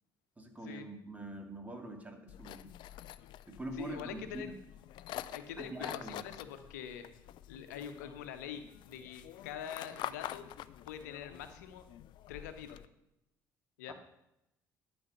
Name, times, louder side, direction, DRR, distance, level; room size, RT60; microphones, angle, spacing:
voice 1, 0.4-2.7 3.5-4.5 5.6-6.2 13.9-14.0, right 1 dB, 15° right, 4 dB, 2.5 m, -44 dB
sound 1, 2.3-12.9, left 12 dB, 60° left, 0.5 m, -47 dB
voice 2, 3.8-4.5 5.3-7.1 7.5-10.5 10.9-11.9 12.3-12.8 13.8-13.9, left 9 dB, 80° left, 9 dB, 0.9 m, -44 dB
12.5 x 6.3 x 6.6 m, 0.88 s
hypercardioid pair, 50°, 9 cm